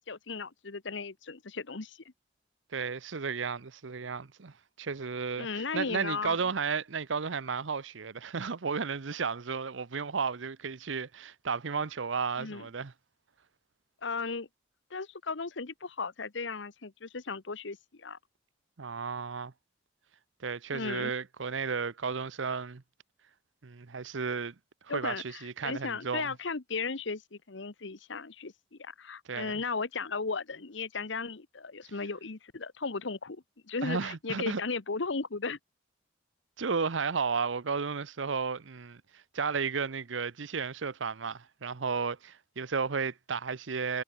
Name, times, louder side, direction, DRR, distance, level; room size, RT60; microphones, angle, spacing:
voice 1, 0.1-2.0 5.4-6.4 12.4-12.7 14.0-14.5 14.9-18.2 20.7-21.1 24.9-35.6, left 4 dB, 75° left, 1.1 m, -36 dB
voice 2, 2.7-12.9 18.8-19.5 20.4-22.8 23.6-24.5 24.8-26.3 29.3-29.5 33.8-34.6 36.6-44.0, right 5 dB, 80° right, 0.8 m, -33 dB
head